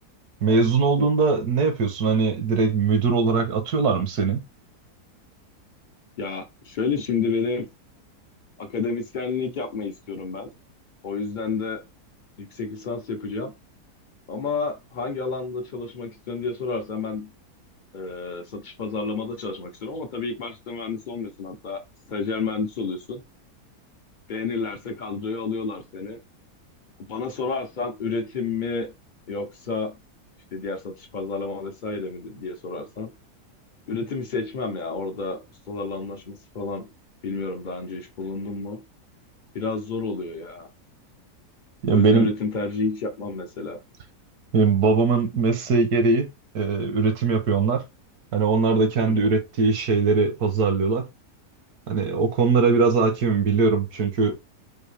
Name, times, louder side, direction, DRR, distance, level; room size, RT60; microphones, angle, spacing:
voice 1, 0.4-4.4 41.8-42.3 44.5-46.3 46.5-47.8 48.3-51.1 51.9-54.4, right 4 dB, 70° right, 1.4 m, -21 dB
voice 2, 6.2-7.7 8.6-10.5 11.0-11.8 12.4-13.5 14.3-17.3 17.9-21.8 22.1-23.2 24.3-26.2 27.0-28.9 29.3-30.0 30.5-33.1 33.9-36.9 37.2-38.8 39.5-40.7 41.9-43.8 49.1-49.3, left 4 dB, 50° left, 0.5 m, -30 dB
4.6 x 2.7 x 3.3 m
omnidirectional pair, 1.7 m